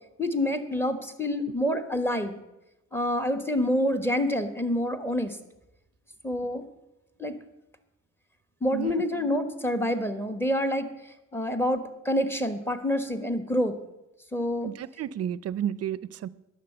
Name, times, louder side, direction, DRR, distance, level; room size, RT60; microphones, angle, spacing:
voice 1, 0.2-2.4 2.9-5.4 6.2-6.6 7.2-7.4 8.6-10.9 11.3-13.7 14.3-14.7, left 1 dB, 10° left, 1.2 m, -27 dB
voice 2, 14.6-16.3, right 10 dB, 55° right, 0.5 m, -32 dB
11.0 x 6.5 x 8.0 m
cardioid pair, 90°, 30 cm